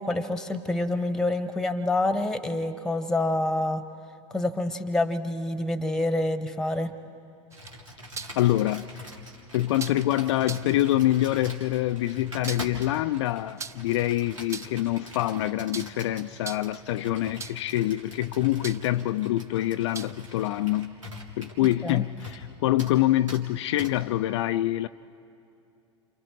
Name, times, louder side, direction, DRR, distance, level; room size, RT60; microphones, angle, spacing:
voice 1, 0.0-3.8 4.3-6.9 21.8-22.0, left 2 dB, 5° left, 1.2 m, -27 dB
sound 1, 7.5-8.4 9.8-10.1 10.4-10.7 12.2-12.9 13.6-14.0 14.4-14.9 15.7-16.0 16.4-16.8 17.4-17.7 18.6-19.0 19.9-20.3, right 5 dB, 20° right, 0.5 m, -39 dB
Computer keyboard, 7.5-22.5 22.8-23.0 23.3-23.4 23.8-23.9, left 1 dB, 90° right, 2.4 m, -43 dB
voice 2, 8.4-8.9 9.5-20.9 21.4-24.9, left 14 dB, 65° left, 0.4 m, -25 dB
29.5 x 27.5 x 3.2 m
figure-of-eight pair, 85°, 16 cm